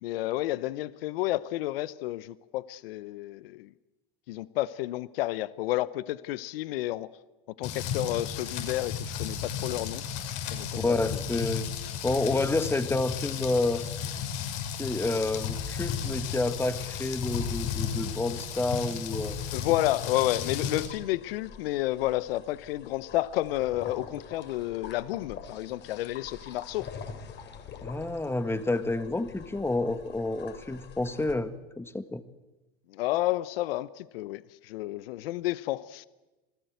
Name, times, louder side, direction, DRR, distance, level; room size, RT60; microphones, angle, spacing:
voice 1, 0.0-3.7 4.3-7.1 7.6-10.0 10.5-11.2 19.5-26.9 32.9-36.1, left 16 dB, 75° left, 17 dB, 0.9 m, -31 dB
Rain, 7.6-20.9, left 7 dB, 60° left, 6.4 m, -34 dB
voice 2, 10.8-11.7 12.0-13.8 14.7-19.4 27.8-31.5 31.8-32.2, left 2 dB, 10° left, 11 dB, 1.7 m, -29 dB
sound 1, 15.3-31.3, left 6 dB, 35° left, 4.2 m, -47 dB
28.0 x 20.0 x 8.1 m, 1.1 s
hypercardioid pair, 110°, 29 cm